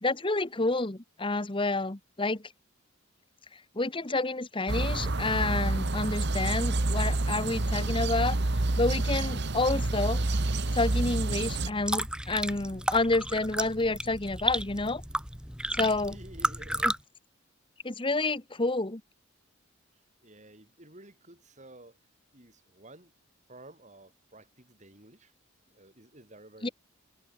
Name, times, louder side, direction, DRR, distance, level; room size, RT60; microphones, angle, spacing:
voice 1, 0.0-2.4 3.7-8.4 8.8-10.2 10.7-15.0 15.7-16.1 16.8-16.9 17.8-19.0 26.6-26.7, left 2 dB, 25° left, 1.2 m, -29 dB
sound 1, 4.7-11.7, right 2 dB, 55° right, 1.3 m, -28 dB
sound 2, 11.7-17.0, right 1 dB, 5° right, 3.2 m, -33 dB
voice 2, 16.1-17.0 20.2-22.0 22.3-23.1 23.5-25.3 25.7-26.7, right 1 dB, 35° right, 6.5 m, -52 dB
head